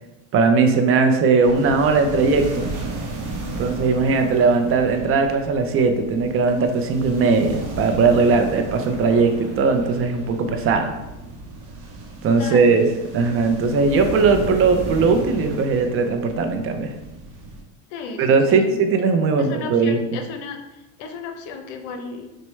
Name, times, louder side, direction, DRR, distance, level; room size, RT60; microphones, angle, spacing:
voice 1, 0.3-2.7 3.6-10.9 12.2-12.9 13.1-16.9 18.2-20.0, right 4 dB, 35° right, 6 dB, 0.5 m, -19 dB
sound 1, 1.4-17.6, right 2 dB, 50° right, 0.9 m, -34 dB
voice 2, 12.4-12.8 17.9-18.8 19.4-22.3, left 4 dB, 75° left, 6 dB, 0.8 m, -35 dB
6.1 x 2.2 x 3.2 m, 1.0 s
supercardioid pair, 130°, 39 cm